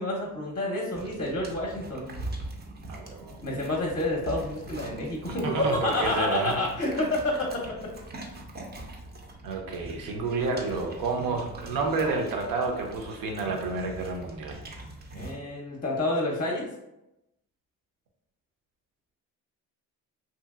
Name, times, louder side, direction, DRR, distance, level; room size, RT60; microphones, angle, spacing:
voice 1, 0.0-2.1 3.4-7.5 15.1-16.7, left 1 dB, 25° left, -1 dB, 0.7 m, -29 dB
sound 1, 0.9-15.4, right 1 dB, 30° right, 0.6 m, -42 dB
voice 2, 2.9-3.4 5.4-6.6 9.4-14.6, right 3 dB, 70° right, 2 dB, 0.7 m, -30 dB
2.8 x 2.5 x 2.4 m, 0.89 s
supercardioid pair, 75°, 35 cm